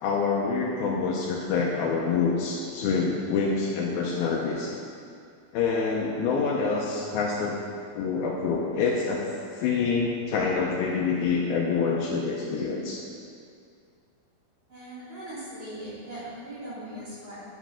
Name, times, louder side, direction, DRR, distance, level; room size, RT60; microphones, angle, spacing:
voice 1, 0.0-4.7 5.5-7.6 8.0-9.2 9.5-13.0, left 5 dB, 80° left, -2 dB, 2.4 m, -26 dB
voice 2, 14.7-17.4, right 1 dB, 35° right, -11 dB, 2.8 m, -39 dB
11.0 x 5.1 x 5.6 m, 2.4 s
omnidirectional pair, 4.7 m